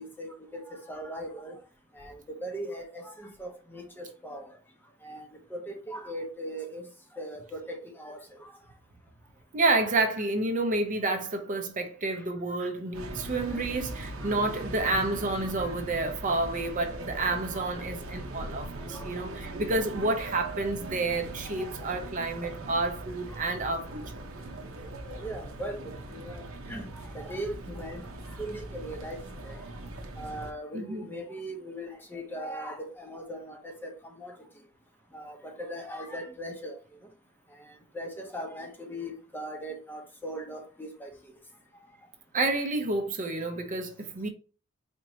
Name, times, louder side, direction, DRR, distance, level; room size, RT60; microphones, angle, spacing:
voice 1, 0.0-1.6 1.9-4.5 5.0-5.2 5.5-6.8 7.1-8.5 12.6-12.7 13.5-13.7 14.2-14.3 17.5-17.7 18.9-19.1 21.6-21.7 25.2-28.1 28.4-29.6 30.2-34.3 35.1-36.8 37.6-41.1, right 1 dB, 10° left, 0.7 m, -39 dB
voice 2, 9.5-24.2 30.7-31.1 42.3-44.3, right 2 dB, 40° right, 0.6 m, -29 dB
sound 1, 12.9-30.5, right 2 dB, 85° right, 0.8 m, -40 dB
4.3 x 3.0 x 2.7 m
head